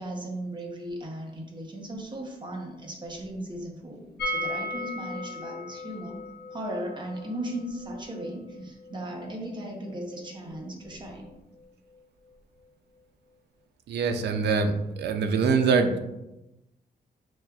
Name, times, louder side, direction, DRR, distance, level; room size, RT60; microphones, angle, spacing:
voice 1, 0.0-6.2 6.5-11.3, right 1 dB, 25° right, 0 dB, 0.7 m, -37 dB
sound 1, 4.2-10.0 10.2-10.3 10.6-10.7, left 1 dB, 85° left, 0.5 m, -37 dB
voice 2, 13.9-14.7 15.0-16.0, right 5 dB, 85° right, 6 dB, 0.4 m, -23 dB
6.0 x 2.3 x 2.3 m, 0.93 s
wide cardioid pair, 155°, 17 cm